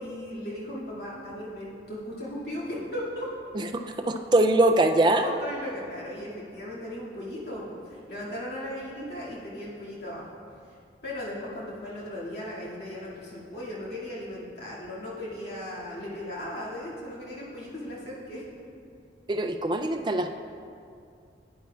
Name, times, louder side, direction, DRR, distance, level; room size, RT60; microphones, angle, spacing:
voice 1, 0.0-3.3 5.2-10.2 11.0-18.5, left 1 dB, 65° left, -7 dB, 2.2 m, -37 dB
voice 2, 3.5-5.3 19.3-20.3, right 2 dB, 25° right, 6 dB, 0.3 m, -23 dB
10.5 x 9.5 x 2.3 m, 2.4 s
head